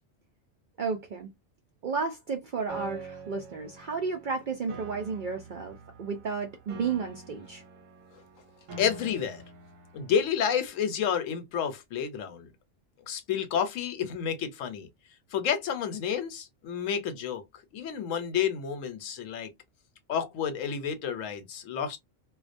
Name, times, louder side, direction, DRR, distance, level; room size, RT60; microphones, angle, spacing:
voice 1, 0.8-1.3 1.8-7.6, right 5 dB, 65° right, 0.5 m, -32 dB
Piano, 2.7-10.7, right 4 dB, 90° right, 1.0 m, -46 dB
voice 2, 8.8-9.4 9.9-12.5 13.1-14.9 15.3-17.4 17.7-19.5 20.1-22.0, left 8 dB, 85° left, 1.0 m, -30 dB
2.3 x 2.1 x 2.5 m
omnidirectional pair, 1.3 m